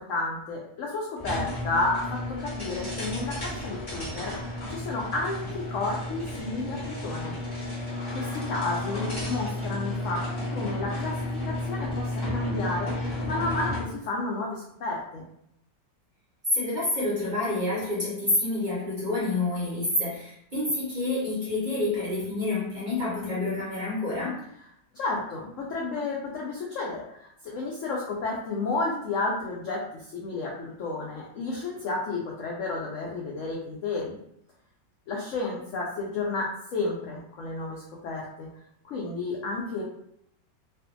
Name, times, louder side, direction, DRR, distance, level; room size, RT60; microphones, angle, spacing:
voice 1, 0.0-7.3 8.1-10.2 10.5-11.1 11.5-15.3 24.9-34.2 35.1-38.5 38.9-39.8, left 3 dB, 90° left, -3 dB, 0.6 m, -31 dB
sound 1, 1.2-14.0, left 1 dB, 30° left, 0.4 m, -32 dB
voice 2, 16.5-24.4, left 2 dB, 45° right, -7 dB, 0.6 m, -28 dB
2.5 x 2.4 x 2.5 m, 0.73 s
omnidirectional pair, 1.9 m